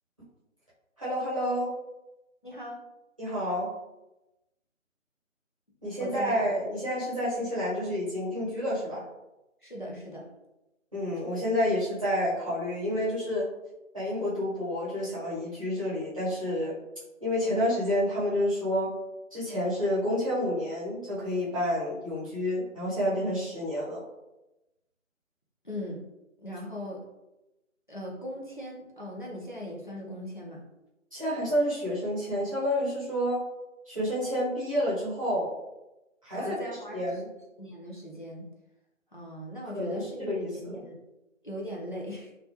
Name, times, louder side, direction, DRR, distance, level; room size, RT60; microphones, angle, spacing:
voice 1, 1.0-1.7 3.2-3.7 5.8-9.0 10.9-13.5 13.9-16.7 17.2-18.9 19.3-24.0 31.1-33.4 33.9-35.5 36.2-37.3 39.7-40.8, equal, 25° right, -10 dB, 0.8 m, -29 dB
voice 2, 2.4-2.8 6.0-6.5 7.4-7.5 9.6-10.3 25.6-26.1 26.4-27.0 27.9-30.6 36.3-37.2 37.6-38.5 39.1-40.3 40.5-41.0 41.4-42.3, equal, 40° left, -3 dB, 0.4 m, -39 dB
2.3 x 2.2 x 2.8 m, 0.97 s
figure-of-eight pair, 160°, 40 cm